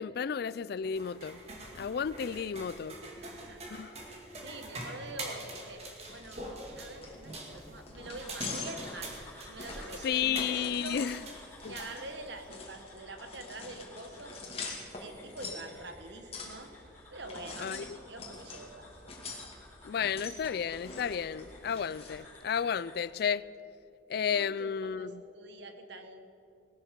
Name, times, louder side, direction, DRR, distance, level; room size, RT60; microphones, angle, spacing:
voice 1, 0.0-1.4 1.8-3.0 3.7-4.0 10.0-11.2 11.6-11.7 17.6-18.0 19.8-23.4 24.1-25.2, left 7 dB, 55° left, 0.3 m, -32 dB
sound 1, 0.8-12.5, right 2 dB, 35° right, 2.1 m, -45 dB
voice 2, 3.2-4.0 4.4-5.8 6.1-9.1 9.5-11.0 11.6-14.4 15.0-16.7 17.1-19.1 24.1-26.3, right 2 dB, 65° right, 1.4 m, -46 dB
sound 2, 6.0-22.1, left 3 dB, 30° left, 2.3 m, -45 dB
sound 3, 8.1-23.0, left 2 dB, 15° left, 4.5 m, -54 dB
18.5 x 12.5 x 5.3 m
head